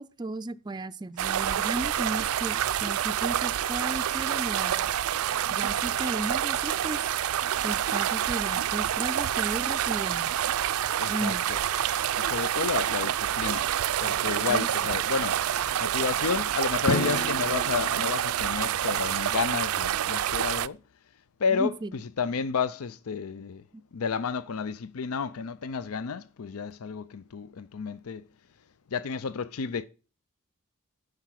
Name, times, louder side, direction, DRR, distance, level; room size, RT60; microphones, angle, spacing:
voice 1, 0.0-4.9 5.5-7.0 7.6-10.3 11.1-11.4 14.5-15.0 21.5-21.9, right 2 dB, 20° right, 0.4 m, -34 dB
sound 1, 1.2-20.7, right 10 dB, 90° right, 0.4 m, -27 dB
voice 2, 11.0-11.6 12.2-13.7 14.0-15.4 15.8-20.8 21.4-23.6 23.9-28.2 28.9-29.8, left 5 dB, 85° left, 0.5 m, -31 dB
sound 2, 14.0-18.8, left 2 dB, 70° left, 3.7 m, -53 dB
Drum, 16.9-18.8, left 4 dB, 45° left, 0.6 m, -33 dB
10.5 x 6.5 x 5.8 m
head